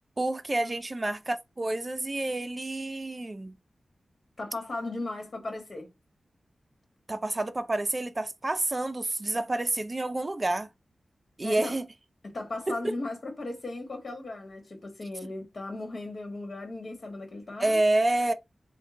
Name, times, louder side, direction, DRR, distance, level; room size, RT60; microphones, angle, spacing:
voice 1, 0.2-3.5 7.1-10.7 11.4-11.9 12.7-12.9 17.6-18.3, right 2 dB, 30° right, 0.4 m, -28 dB
voice 2, 4.4-5.9 11.4-11.8 12.2-17.8, left 2 dB, 55° left, 1.4 m, -37 dB
3.6 x 2.2 x 3.6 m
wide cardioid pair, 90°, 0 cm